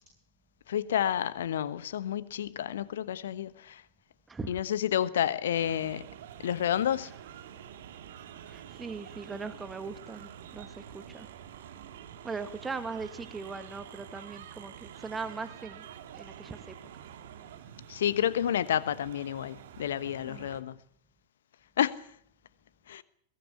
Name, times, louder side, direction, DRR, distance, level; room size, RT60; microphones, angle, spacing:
voice 1, 0.7-3.8 4.5-6.1 6.4-7.1 17.9-20.8 21.8-22.0 22.9-23.0, left 10 dB, 60° left, 1.2 m, -30 dB
voice 2, 4.3-4.6 8.5-11.3 12.2-15.9 16.1-16.8 20.3-20.5, right 4 dB, 15° right, 1.8 m, -40 dB
sound 1, 5.5-20.6, right 9 dB, 60° right, 2.2 m, -48 dB
22.0 x 18.0 x 8.3 m
figure-of-eight pair, 90°, 0 cm